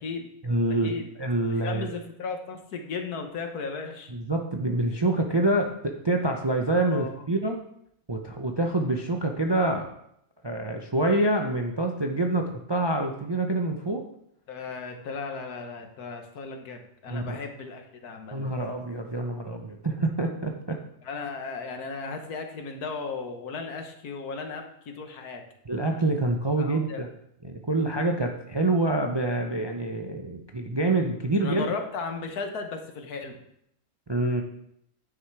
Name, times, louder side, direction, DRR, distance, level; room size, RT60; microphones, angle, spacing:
voice 1, 0.4-0.9 1.2-1.9 4.1-7.6 8.1-9.9 10.4-14.0 17.1-17.4 18.3-20.8 25.7-27.1 27.4-31.6 34.1-34.4, right 2 dB, 35° right, 3 dB, 0.4 m, -26 dB
voice 2, 1.6-4.1 6.9-7.1 14.5-18.4 21.0-25.4 26.6-27.0 31.4-33.4, left 4 dB, 85° left, 5 dB, 1.7 m, -35 dB
9.6 x 6.2 x 4.7 m, 0.74 s
omnidirectional pair, 1.6 m